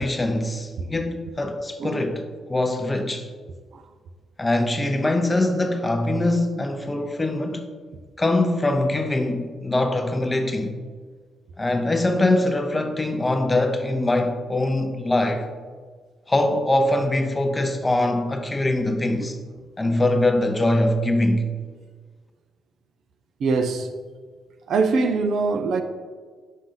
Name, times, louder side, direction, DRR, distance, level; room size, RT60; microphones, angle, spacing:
voice 1, 0.0-2.2 2.5-3.3 4.4-7.7 8.2-10.7 11.6-15.5 16.3-19.4 19.8-21.5, left 1 dB, 20° left, 0.6 m, -23 dB
voice 2, 1.8-2.1 3.7-3.8 23.4-23.9 24.7-25.8, right 4 dB, 65° right, 0.5 m, -23 dB
6.3 x 4.0 x 3.8 m
cardioid pair, 90°, 0 cm